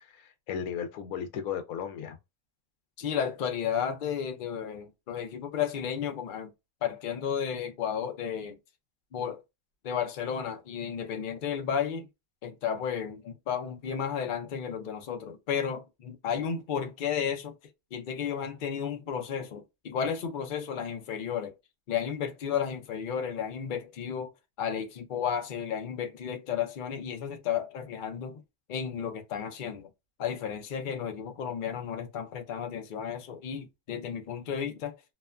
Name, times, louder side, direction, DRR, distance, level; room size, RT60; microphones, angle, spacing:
voice 1, 0.0-2.2, left 8 dB, 75° left, 1.0 m, -35 dB
voice 2, 3.0-6.5 6.8-8.6 9.1-9.4 9.8-12.1 12.4-17.5 17.9-21.5 21.9-24.3 24.6-28.4 28.7-29.9 30.2-35.0, left 8 dB, 60° left, 0.5 m, -33 dB
2.9 x 2.2 x 2.3 m
omnidirectional pair, 1.5 m